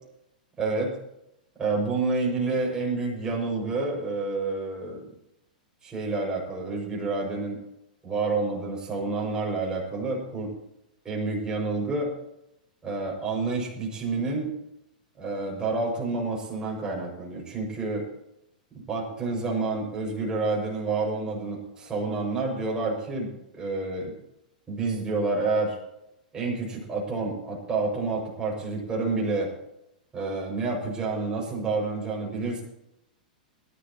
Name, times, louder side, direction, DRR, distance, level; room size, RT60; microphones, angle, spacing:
voice 1, 0.6-0.9 1.6-5.1 5.8-7.6 8.0-10.5 11.0-12.1 12.8-14.5 15.2-18.1 18.9-23.3 23.5-24.1 24.7-25.8 26.3-29.5 30.1-32.6, right 3 dB, 15° right, -3 dB, 6.2 m, -29 dB
21.5 x 12.0 x 3.0 m, 0.85 s
figure-of-eight pair, 100°, 5 cm